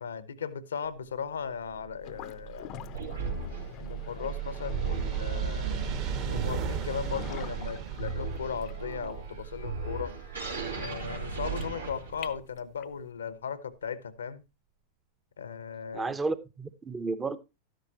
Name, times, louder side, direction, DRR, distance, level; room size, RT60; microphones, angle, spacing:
voice 1, 0.0-2.8 3.8-5.9 6.3-10.1 10.8-14.4 15.4-16.1, left 6 dB, 70° left, 0.9 m, -37 dB
sound 1, 1.6-12.4, right 8 dB, 45° right, 1.4 m, -36 dB
sound 2, 2.0-13.0, left 12 dB, 40° left, 0.7 m, -47 dB
sound 3, 2.9-12.4, right 3 dB, 80° right, 3.0 m, -38 dB
voice 2, 15.9-17.4, right 3 dB, 15° right, 0.8 m, -32 dB
12.5 x 10.0 x 2.9 m
figure-of-eight pair, 90°, 0 cm